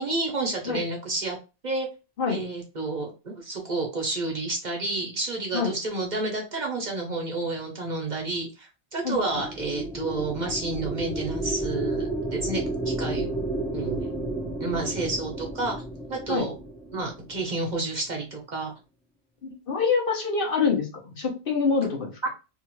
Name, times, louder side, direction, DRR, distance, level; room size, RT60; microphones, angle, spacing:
voice 1, 0.0-1.4 1.6-1.9 2.3-13.3 13.7-14.1 14.6-15.8 16.1-16.5 16.9-18.7 22.2-22.3, right 2 dB, 45° right, 0 dB, 0.9 m, -30 dB
voice 2, 9.0-9.4 16.3-16.5 19.4-22.3, left 5 dB, 60° left, 0 dB, 1.0 m, -26 dB
sound 1, 9.2-17.7, right 2 dB, 5° left, 0.5 m, -32 dB
2.7 x 2.4 x 3.0 m, 0.30 s
omnidirectional pair, 1.1 m